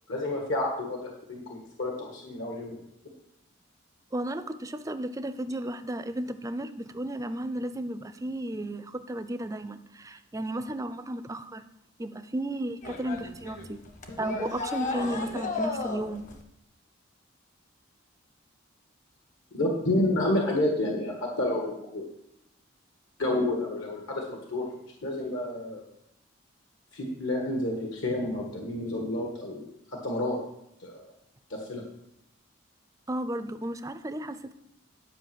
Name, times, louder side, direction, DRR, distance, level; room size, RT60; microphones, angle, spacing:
voice 1, 0.1-2.8 19.5-22.1 23.2-24.6 25.0-25.8 26.9-29.6 30.0-30.4 30.8-31.0 31.5-31.8, left 1 dB, 65° left, 0 dB, 1.5 m, -29 dB
voice 2, 4.1-11.6 12.0-13.8 14.2-16.2 33.1-34.5, right 1 dB, 15° right, 11 dB, 0.4 m, -34 dB
sound 1, 12.8-16.4, left 3 dB, 40° left, 1.1 m, -34 dB
10.5 x 5.3 x 7.6 m, 0.80 s
head